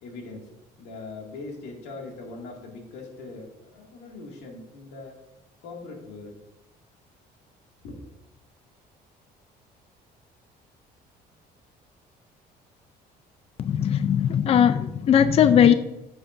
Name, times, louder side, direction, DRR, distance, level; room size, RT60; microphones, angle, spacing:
voice 1, 0.0-0.5 0.8-5.2 5.6-6.3 7.8-8.0, left 3 dB, 90° left, 0 dB, 2.1 m, -41 dB
voice 2, 13.6-15.7, left 9 dB, 35° left, 11 dB, 0.4 m, -19 dB
9.8 x 7.2 x 2.6 m, 0.96 s
cardioid pair, 110°, 17 cm